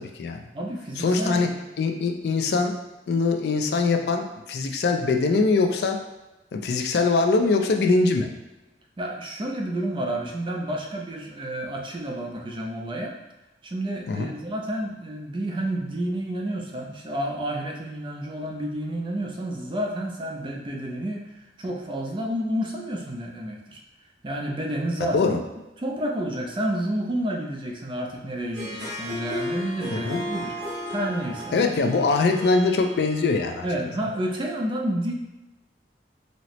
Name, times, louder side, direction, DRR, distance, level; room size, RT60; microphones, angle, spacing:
voice 1, 0.0-0.4 1.0-1.5 1.8-2.7 3.1-6.0 6.5-8.3 14.1-14.3 25.1-25.4 29.9-30.2 31.5-33.6, left 3 dB, 65° left, 4 dB, 0.3 m, -22 dB
voice 2, 0.5-1.5 9.0-13.1 13.6-23.8 24.2-25.4 25.8-30.6 30.9-31.5 33.6-35.1, right 1 dB, 30° right, 0 dB, 0.4 m, -30 dB
Harp, 28.4-33.8, left 1 dB, 65° right, 1.0 m, -34 dB
4.1 x 2.0 x 3.0 m, 1.0 s
head